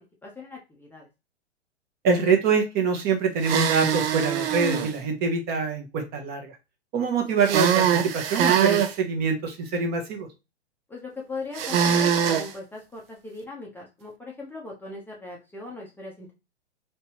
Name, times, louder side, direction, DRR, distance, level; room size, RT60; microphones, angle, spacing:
voice 1, 0.2-1.1 10.9-16.3, left 3 dB, 5° left, -2 dB, 0.7 m, -39 dB
voice 2, 2.0-6.5 6.9-10.3, right 5 dB, 30° right, 4 dB, 0.8 m, -25 dB
sound 1, 3.4-4.9 7.4-8.9 11.5-12.5, right 8 dB, 55° right, 0.7 m, -22 dB
3.2 x 3.0 x 2.9 m, 0.26 s
hypercardioid pair, 115°, 34 cm